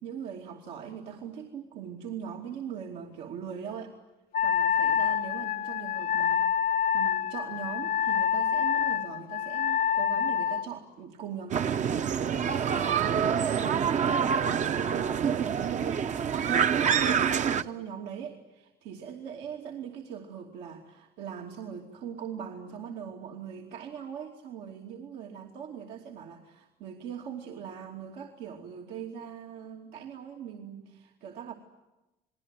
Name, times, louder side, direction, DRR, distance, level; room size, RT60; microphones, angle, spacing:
voice 1, 0.0-3.9 4.4-6.5 6.9-11.9 12.6-14.5 14.9-31.5, right 8 dB, 85° right, -1 dB, 2.8 m, -40 dB
Wind instrument woodwind instrument, 4.3-10.7, left 8 dB, 60° left, 0.9 m, -27 dB
sound 1, 11.5-17.6, right 7 dB, 45° right, 0.9 m, -26 dB
29.0 x 20.5 x 9.2 m, 1.0 s
cardioid pair, 110°, 17 cm